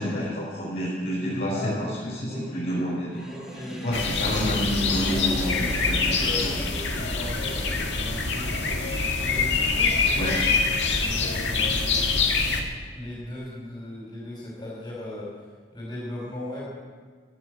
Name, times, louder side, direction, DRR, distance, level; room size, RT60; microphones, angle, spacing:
voice 1, 0.0-3.3 3.8-6.5 10.1-10.4, equal, 60° left, -8 dB, 5.3 m, -29 dB
voice 2, 1.5-1.8 2.3-2.6 3.3-4.0 6.2-10.4 11.0-12.0 12.9-15.3 15.7-16.7, left 1 dB, 25° left, -7 dB, 4.9 m, -38 dB
Sink (filling or washing), 3.1-7.1, right 1 dB, 5° right, 3.8 m, -40 dB
sound 1, 3.9-12.6, left 4 dB, 80° left, 1.9 m, -25 dB
16.0 x 8.2 x 9.7 m, 1.5 s
head